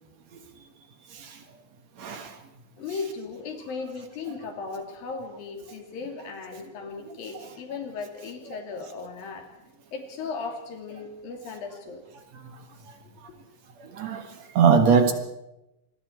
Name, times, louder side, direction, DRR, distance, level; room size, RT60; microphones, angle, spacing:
voice 1, 2.0-2.3 13.8-14.3 14.5-15.1, right 6 dB, 55° right, 7 dB, 2.6 m, -21 dB
voice 2, 2.8-9.5 9.9-12.0 13.2-13.4, left 4 dB, 90° left, 4 dB, 4.6 m, -37 dB
26.5 x 22.0 x 4.6 m, 0.90 s
omnidirectional pair, 4.0 m